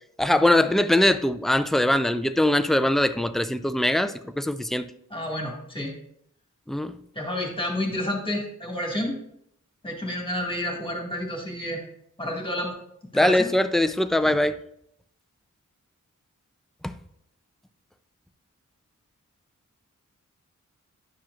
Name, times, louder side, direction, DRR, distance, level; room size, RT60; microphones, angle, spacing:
voice 1, 0.2-4.9 6.7-6.9 13.1-14.6 16.8-16.9, left 1 dB, ahead, 10 dB, 0.4 m, -22 dB
voice 2, 5.1-5.9 7.1-9.2 9.8-11.8 12.2-12.8 13.1-13.5, left 1 dB, 15° left, 0 dB, 1.9 m, -30 dB
10.0 x 6.0 x 2.5 m, 0.72 s
wide cardioid pair, 65°, 31 cm